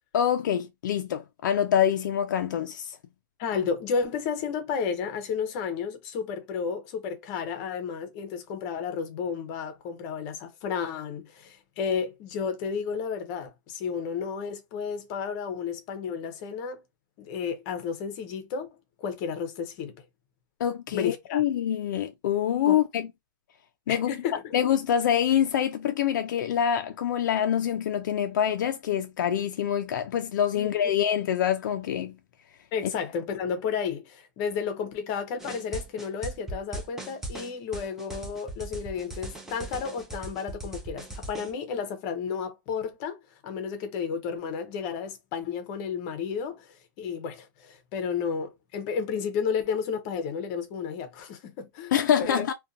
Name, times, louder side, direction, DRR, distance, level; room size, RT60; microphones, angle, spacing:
voice 1, 0.1-3.0 20.6-23.1 23.9-24.1 24.5-32.1 51.9-52.5, left 9 dB, 70° left, 0.4 m, -25 dB
voice 2, 3.4-16.8 17.2-18.7 19.0-19.9 20.9-21.4 22.7-22.8 23.9-24.5 30.5-30.7 32.7-51.9 52.2-52.4, left 6 dB, 35° left, 0.6 m, -32 dB
sound 1, 35.4-41.5, right 2 dB, 5° right, 0.4 m, -38 dB
2.5 x 2.2 x 2.6 m
hypercardioid pair, 150°, 11 cm